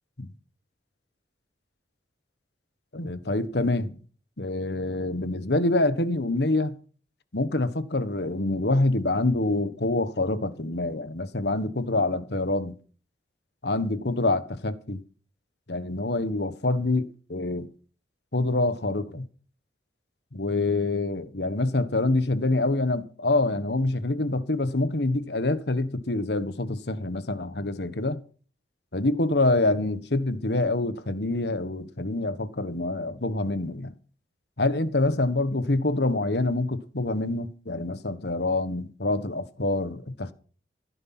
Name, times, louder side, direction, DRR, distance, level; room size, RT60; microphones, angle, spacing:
voice 1, 2.9-3.9 4.4-6.7 7.3-12.8 13.6-15.0 15.7-17.7 18.3-19.2 20.3-28.2 28.9-33.9 34.6-40.3, left 2 dB, 70° left, 1.5 m, -26 dB
16.0 x 9.8 x 6.1 m
head